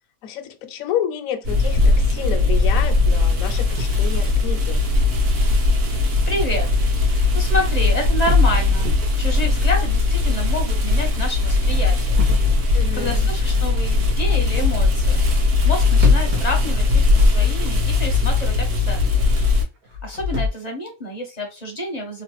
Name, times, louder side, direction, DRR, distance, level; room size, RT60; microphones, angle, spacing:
voice 1, 0.2-4.8 12.7-13.2, left 9 dB, 70° left, 0.9 m, -29 dB
sound 1, 1.4-19.6, left 3 dB, 60° right, 1.2 m, -19 dB
body falling down, 3.6-6.7 7.7-7.8 8.2-11.5 12.2-14.0 15.9-17.7 18.0-18.1 18.7-18.8 19.8-20.5, left 4 dB, 90° right, 1.4 m, -26 dB
voice 2, 6.3-6.7 7.0-12.2 12.5-19.1 20.0-22.2, left 1 dB, 40° left, 0.6 m, -29 dB
3.1 x 2.2 x 2.9 m
omnidirectional pair, 1.5 m